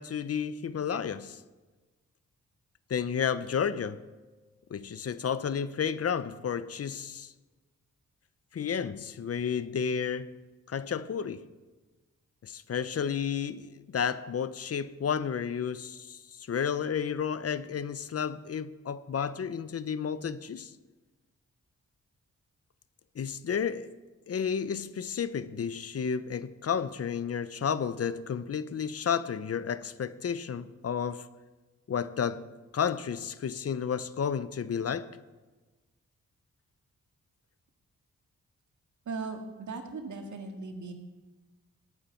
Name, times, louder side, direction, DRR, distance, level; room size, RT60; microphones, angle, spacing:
voice 1, 0.0-1.4 2.9-4.0 4.7-7.3 8.5-10.3 10.7-11.4 12.4-20.7 23.1-23.9 24.3-31.3 31.9-32.5 32.7-35.1, left 7 dB, 50° left, 0.7 m, -32 dB
sound 1, 3.5-5.0, left 2 dB, 85° left, 3.5 m, -52 dB
voice 2, 39.1-40.9, right 4 dB, 70° right, 2.0 m, -38 dB
18.5 x 9.1 x 4.5 m
cardioid pair, 70°, 30 cm